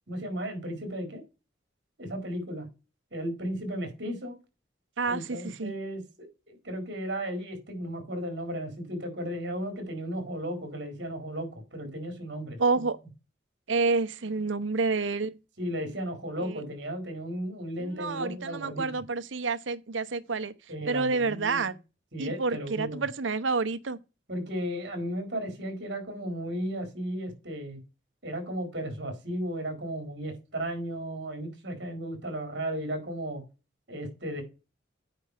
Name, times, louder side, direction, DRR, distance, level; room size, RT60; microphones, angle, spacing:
voice 1, 0.1-1.2 2.0-2.7 3.1-4.4 5.0-12.9 15.6-18.9 20.7-21.7 22.1-23.0 24.3-27.8 28.2-33.4 33.9-34.4, equal, 60° right, 4.4 m, -35 dB
voice 2, 5.0-5.7 12.6-13.0 13.7-15.4 16.4-16.6 17.8-20.5 20.9-21.7 22.2-24.0, right 4 dB, 80° right, 0.8 m, -29 dB
9.2 x 5.4 x 5.0 m
head